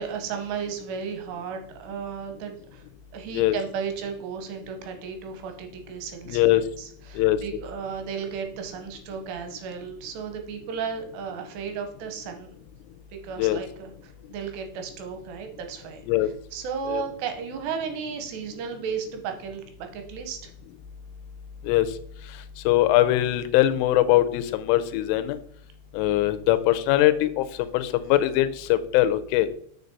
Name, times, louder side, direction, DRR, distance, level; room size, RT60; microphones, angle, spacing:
voice 1, 0.0-2.8 3.1-12.5 13.1-20.5, right 6 dB, 75° right, 5 dB, 2.6 m, -34 dB
voice 2, 6.3-6.6 7.2-7.4 13.4-13.6 16.1-16.3 16.9-17.0 21.6-21.9 22.7-25.4 25.9-29.5, left 14 dB, 90° left, 12 dB, 3.2 m, -21 dB
7.2 x 6.4 x 4.1 m, 0.63 s
omnidirectional pair, 5.5 m